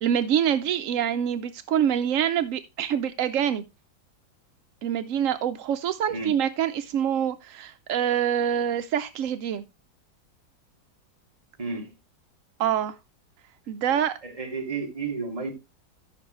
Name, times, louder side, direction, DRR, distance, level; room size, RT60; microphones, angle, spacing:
voice 1, 0.0-3.6 4.8-9.6 12.6-12.9 13.7-14.1, right 9 dB, 70° right, 0.7 m, -25 dB
voice 2, 11.6-11.9 14.2-15.5, right 4 dB, 20° right, 2.4 m, -32 dB
13.5 x 6.0 x 3.1 m
omnidirectional pair, 2.0 m